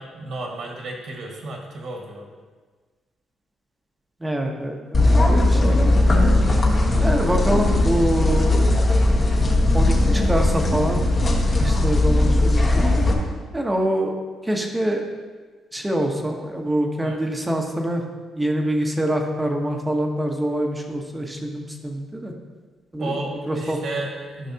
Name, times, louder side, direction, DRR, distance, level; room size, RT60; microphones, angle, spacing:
voice 1, 0.0-2.3 11.6-11.9 17.0-17.2 23.0-24.5, right 2 dB, 70° right, 0 dB, 1.7 m, -32 dB
voice 2, 4.2-5.8 7.0-8.7 9.7-11.0 11.6-12.8 13.5-14.1 14.4-15.0 15.7-18.0 18.4-22.3 22.9-23.2 23.5-23.8, right 1 dB, 15° right, 2 dB, 1.0 m, -25 dB
sound 1, 4.9-13.1, left 2 dB, 40° left, 1.3 m, -18 dB
11.5 x 5.7 x 2.8 m, 1.4 s
cardioid pair, 90°, 0 cm